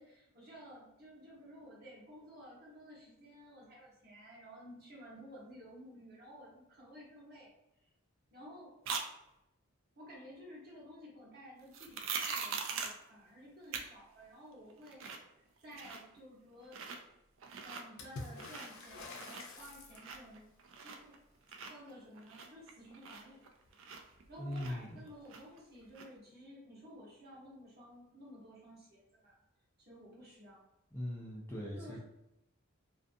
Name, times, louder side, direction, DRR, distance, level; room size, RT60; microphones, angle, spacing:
voice 1, 0.0-7.5 8.3-8.7 10.0-15.3 15.6-16.8 17.6-20.4 20.8-21.1 21.7-23.4 24.3-29.4 29.8-30.6 31.7-32.0, equal, 45° right, -5 dB, 0.9 m, -54 dB
sound 1, 8.8-9.1 11.7-13.0 13.7-13.8 14.2-14.3 14.7-15.3 15.6-16.2 16.6-17.0 17.4-17.8 18.2-18.9 19.1-21.2 21.5-24.2 24.5-25.6 25.9-26.1, right 5 dB, 60° right, 0.3 m, -42 dB
Water / Splash splatter, 18.0-20.4 23.7-23.8 24.0-24.8 25.9-26.0, left 3 dB, 70° left, 0.5 m, -48 dB
voice 2, 24.4-25.0 30.9-32.0, left 1 dB, 10° left, -5 dB, 0.4 m, -40 dB
2.5 x 2.4 x 2.5 m, 0.84 s
head